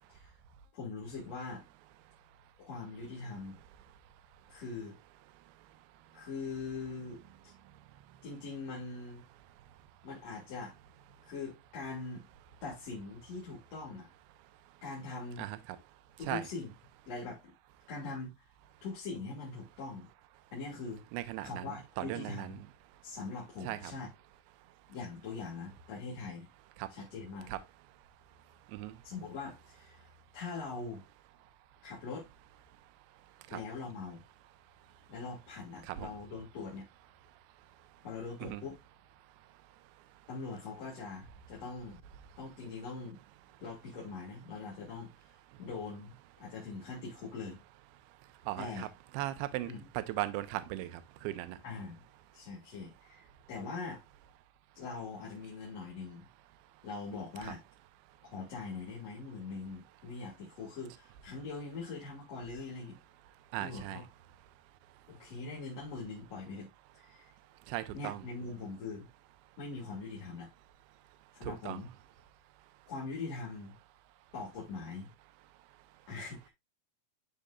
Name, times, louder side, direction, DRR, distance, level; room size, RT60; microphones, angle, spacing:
voice 1, 0.7-1.7 2.6-3.6 4.5-4.9 6.1-7.5 8.2-9.2 10.0-10.7 11.2-12.3 12.6-14.1 14.8-15.5 16.2-16.7 17.1-17.5 17.9-18.5 18.8-20.1 20.5-21.0 21.4-22.6 23.0-24.1 24.9-26.5 26.9-27.5 29.0-31.0 31.8-32.3 33.5-34.2 35.1-36.9 38.0-38.8 40.3-42.0 42.4-43.2 43.6-45.3 45.6-47.6 48.6-48.9 49.6-49.9 51.6-52.0 52.3-54.0 54.8-56.3 56.8-57.6 58.2-63.0 63.6-64.0 65.1-67.3 67.9-69.1 69.6-70.5 71.3-71.9 72.9-73.8 74.3-75.1 76.1-76.5, left 4 dB, 45° left, 2.6 m, -42 dB
voice 2, 5.4-5.7 6.1-6.3 7.6-8.2 15.4-15.8 16.3-16.5 21.1-22.6 23.6-23.9 26.8-27.0 27.5-27.6 28.7-29.0 33.1-33.2 33.5-33.6 35.8-36.1 37.9-38.0 38.5-38.6 48.2-48.9 49.1-51.6 57.4-57.5 63.5-64.1 67.7-68.2 71.4-71.8, right 15 dB, 80° right, 2.5 m, -39 dB
12.0 x 4.1 x 2.4 m
omnidirectional pair, 4.6 m